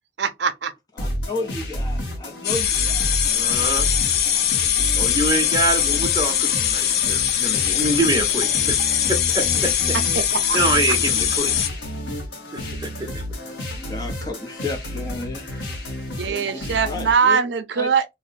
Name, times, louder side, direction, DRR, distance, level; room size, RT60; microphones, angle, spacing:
voice 1, 0.2-0.7 10.1-10.6 16.1-18.1, right 6 dB, 75° right, 0.5 m, -22 dB
sound 1, 1.0-17.1, left 1 dB, 90° left, 0.9 m, -31 dB
voice 2, 1.0-3.5 4.7-4.8 7.7-7.9 9.4-9.7 13.8-15.4 16.2-17.4 17.8-17.9, left 3 dB, 20° left, 0.6 m, -33 dB
sound 2, 2.4-11.7, left 10 dB, 60° left, 0.4 m, -21 dB
voice 3, 3.2-3.9 4.9-8.8 9.1-10.0 10.5-11.5 12.5-12.9, right 2 dB, 20° right, 0.7 m, -25 dB
2.7 x 2.1 x 4.0 m
head